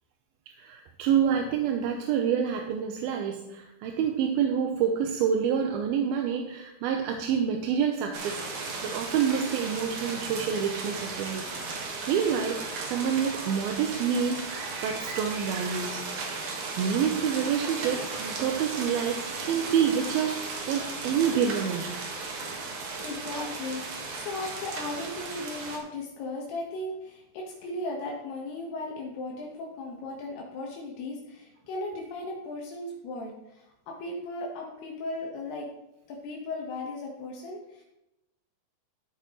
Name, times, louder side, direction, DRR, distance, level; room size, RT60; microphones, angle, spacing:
voice 1, 0.6-8.4 8.8-16.0 16.8-21.9, right 7 dB, 80° right, 3 dB, 2.4 m, -28 dB
sound 1, 8.1-25.8, right 3 dB, 55° right, 2.5 m, -36 dB
voice 2, 23.0-35.7 36.1-37.8, left 2 dB, 75° left, -1 dB, 3.2 m, -36 dB
14.0 x 8.7 x 3.0 m, 0.89 s
omnidirectional pair, 4.7 m